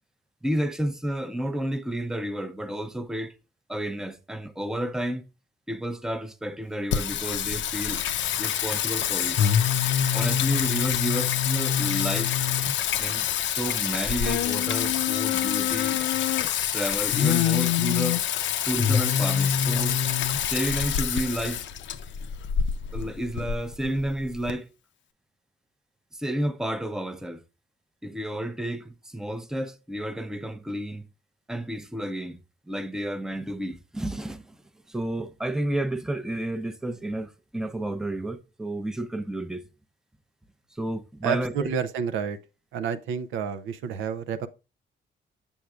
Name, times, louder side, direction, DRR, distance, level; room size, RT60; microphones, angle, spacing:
voice 1, 0.4-3.3 3.7-5.2 5.7-8.0 8.4-9.4 10.1-12.3 13.0-16.0 16.7-18.2 18.7-20.0 20.5-21.6 22.9-24.7 26.1-27.4 28.0-31.1 31.5-34.6 34.9-39.7 40.7-41.7, right 1 dB, 5° right, 0.6 m, -31 dB
Singing, 6.9-24.5, left 9 dB, 70° left, 0.5 m, -25 dB
voice 2, 41.2-42.4 42.7-44.5, right 7 dB, 85° right, 0.6 m, -29 dB
7.0 x 6.2 x 2.3 m
cardioid pair, 90°, 20 cm